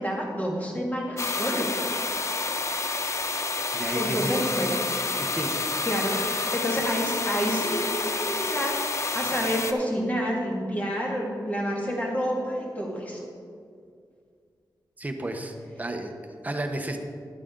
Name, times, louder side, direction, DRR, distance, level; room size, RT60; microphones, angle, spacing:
voice 1, 0.0-1.8 3.9-4.8 5.8-6.2 6.4-8.8 9.1-13.2, equal, 20° left, -2 dB, 2.0 m, -28 dB
sound 1, 1.2-9.7, left 3 dB, 40° left, 0.6 m, -29 dB
voice 2, 3.7-4.4 5.1-5.5 6.1-6.5 15.0-17.0, right 1 dB, 20° right, 5 dB, 0.9 m, -33 dB
11.5 x 8.3 x 3.8 m, 2.2 s
wide cardioid pair, 105°, 8 cm